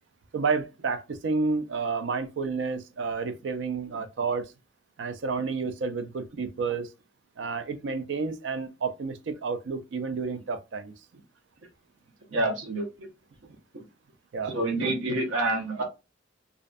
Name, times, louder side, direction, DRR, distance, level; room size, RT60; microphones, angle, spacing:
voice 1, 0.3-4.5 5.0-6.9 7.4-10.9 14.3-14.6, right 4 dB, 65° right, 0.4 m, -30 dB
voice 2, 12.3-13.1 13.7-13.8 14.5-15.8, right 2 dB, 90° right, 0.8 m, -28 dB
2.5 x 2.1 x 2.4 m
head